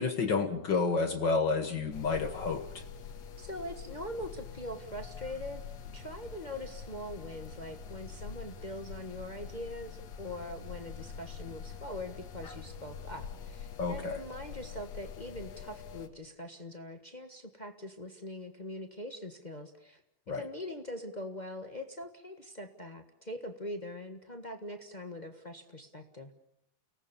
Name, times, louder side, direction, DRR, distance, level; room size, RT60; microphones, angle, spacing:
voice 1, 0.0-2.8 13.8-14.2 20.3-20.4, left 4 dB, 50° left, 8 dB, 1.5 m, -30 dB
sound 1, 1.9-16.1, left 6 dB, 70° left, 2.8 m, -45 dB
voice 2, 3.4-5.6 5.9-20.0 20.3-26.3, left 1 dB, 30° left, 5 dB, 0.7 m, -42 dB
30.0 x 19.0 x 6.9 m, 0.77 s
omnidirectional pair, 3.3 m